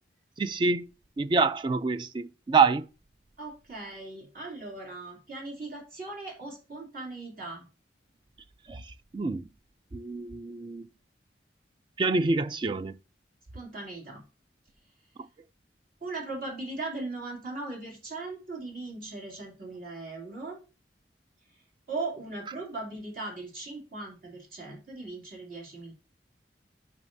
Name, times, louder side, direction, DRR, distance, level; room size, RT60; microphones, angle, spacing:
voice 1, 0.4-0.9 1.2-2.9 8.7-9.5 9.9-10.9 12.0-13.0, right 4 dB, 25° right, 0.3 m, -26 dB
voice 2, 3.4-7.6 13.5-14.3 16.0-20.6 21.9-25.9, right 3 dB, 55° right, 3.0 m, -38 dB
9.1 x 5.3 x 2.7 m
head